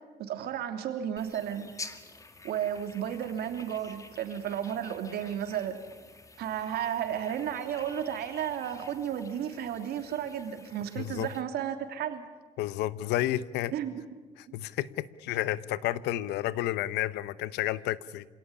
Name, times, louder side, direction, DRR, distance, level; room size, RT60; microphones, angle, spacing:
voice 1, 0.2-1.7 2.4-5.8 6.4-12.2 13.7-14.0, right 9 dB, 70° right, 7 dB, 3.1 m, -33 dB
sound 1, 1.2-11.4, left 3 dB, 20° left, 1.8 m, -49 dB
voice 2, 11.0-11.3 12.6-13.7 14.4-18.3, left 14 dB, 85° left, 17 dB, 0.9 m, -31 dB
27.0 x 17.5 x 9.9 m, 1.3 s
cardioid pair, 110°, 17 cm